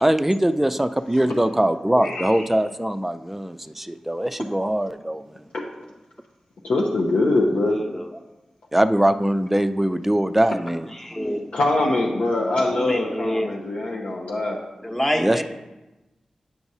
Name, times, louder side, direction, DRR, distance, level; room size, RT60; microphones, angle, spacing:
voice 1, 0.0-5.4 8.7-10.9 15.2-15.4, right 1 dB, 10° right, 9 dB, 0.4 m, -22 dB
voice 2, 2.0-2.5 6.6-7.8 11.5-14.6, left 2 dB, 85° left, -2 dB, 0.7 m, -23 dB
voice 3, 7.7-8.1 10.9-11.5 12.6-13.6 14.8-15.4, equal, 20° left, 4 dB, 1.0 m, -27 dB
8.8 x 4.6 x 2.8 m, 1.0 s
cardioid pair, 45°, 2 cm